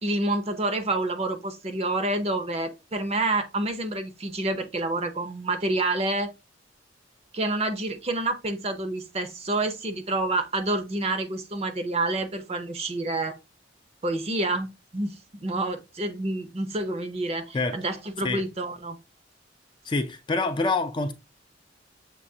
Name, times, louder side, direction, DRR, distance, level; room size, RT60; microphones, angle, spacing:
voice 1, 0.0-6.3 7.3-13.4 14.0-19.0, right 2 dB, 35° right, 0.6 m, -28 dB
voice 2, 19.8-21.1, left 3 dB, 25° left, 0.4 m, -26 dB
6.8 x 2.8 x 2.7 m
head